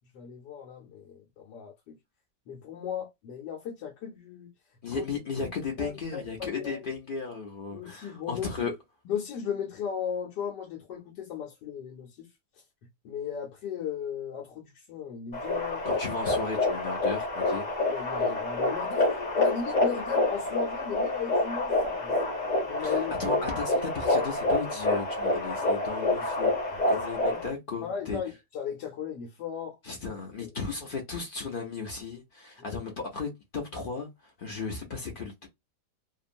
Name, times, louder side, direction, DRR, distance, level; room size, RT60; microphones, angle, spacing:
voice 1, 0.1-2.0 2.5-4.5 4.9-5.0 5.8-6.9 7.7-8.7 9.1-12.3 13.0-15.9 17.9-19.1 19.4-22.1 22.7-23.1 27.8-29.8 32.6-32.8, left 7 dB, 80° left, 1.3 m, -36 dB
voice 2, 4.8-8.7 15.8-17.7 22.8-28.2 29.8-35.5, left 4 dB, 60° left, 0.5 m, -35 dB
sound 1, 15.3-27.5, left 2 dB, 25° left, 1.2 m, -27 dB
2.9 x 2.3 x 2.5 m
omnidirectional pair, 1.8 m